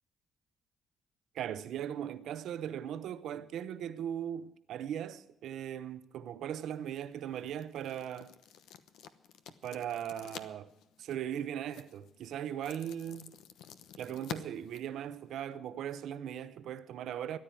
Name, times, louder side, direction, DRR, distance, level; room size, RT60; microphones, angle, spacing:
voice 1, 1.3-8.3 9.6-10.7 11.0-13.3 14.0-17.4, right 10 dB, 75° right, 0.8 m, -39 dB
sound 1, 6.5-15.6, left 9 dB, 85° left, 1.0 m, -50 dB
14.0 x 10.0 x 9.2 m
cardioid pair, 90°, 0 cm